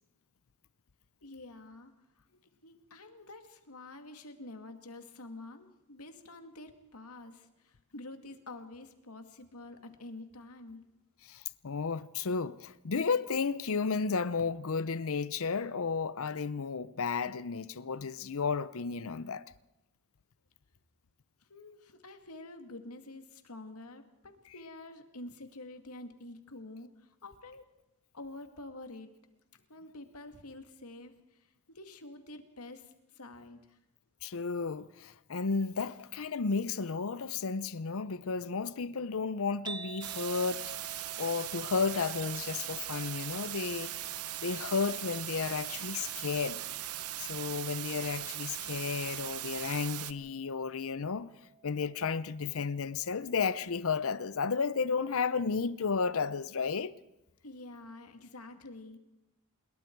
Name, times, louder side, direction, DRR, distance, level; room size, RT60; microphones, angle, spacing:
voice 1, 1.2-2.2 2.6-10.8 21.5-27.7 28.1-29.1 29.7-33.8 57.4-59.0, left 2 dB, 85° left, 2.2 m, -48 dB
voice 2, 11.3-19.5 34.2-43.9 44.4-46.6 47.2-51.3 51.6-56.9, left 5 dB, 65° left, 0.7 m, -33 dB
sound 1, 39.7-55.9, right 4 dB, 20° right, 0.8 m, -53 dB
sound 2, 40.0-50.1, right 13 dB, 85° right, 1.0 m, -39 dB
26.5 x 22.0 x 4.6 m
head